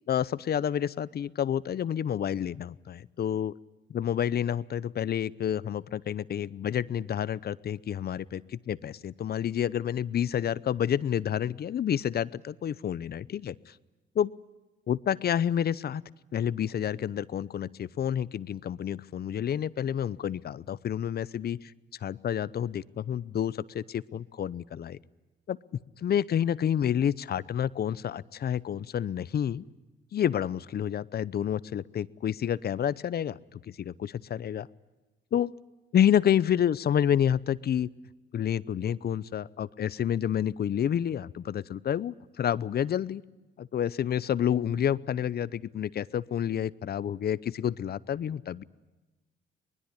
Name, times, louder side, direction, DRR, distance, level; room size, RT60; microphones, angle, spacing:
voice 1, 0.1-3.5 3.9-13.5 14.1-14.3 14.9-16.0 16.3-21.7 22.0-25.0 25.5-25.6 26.0-29.6 30.1-34.7 35.3-35.5 35.9-37.9 38.3-43.2 43.6-48.6, left 9 dB, 55° left, 20 dB, 0.8 m, -29 dB
23.5 x 21.0 x 9.9 m, 1.2 s
cardioid pair, 90°, 20 cm